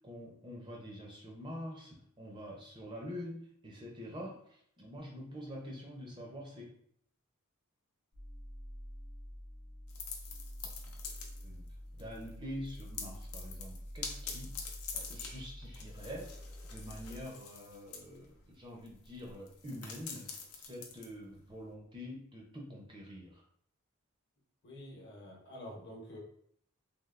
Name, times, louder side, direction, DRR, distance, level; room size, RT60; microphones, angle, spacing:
voice 1, 0.0-6.7 11.4-11.7 11.9-14.6 14.9-16.3 16.7-20.3 20.5-23.4, equal, 20° right, -1 dB, 0.5 m, -46 dB
sound 1, 8.1-17.2, equal, 75° right, 0.9 m, -47 dB
sound 2, 9.9-11.7 12.0-12.3 12.6-21.7, left 6 dB, 85° left, 0.6 m, -46 dB
voice 2, 24.6-26.2, equal, 55° left, -2 dB, 0.9 m, -48 dB
3.3 x 2.4 x 2.4 m, 0.65 s
head